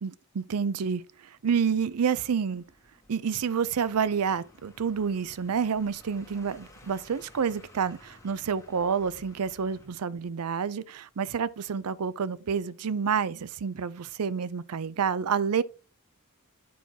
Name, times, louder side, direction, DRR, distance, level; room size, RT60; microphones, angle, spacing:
voice 1, 0.0-2.6 3.1-15.6, right 6 dB, 85° right, 0.5 m, -29 dB
sound 1, 1.8-9.9, left 1 dB, 15° left, 1.3 m, -56 dB
9.3 x 6.3 x 2.8 m
head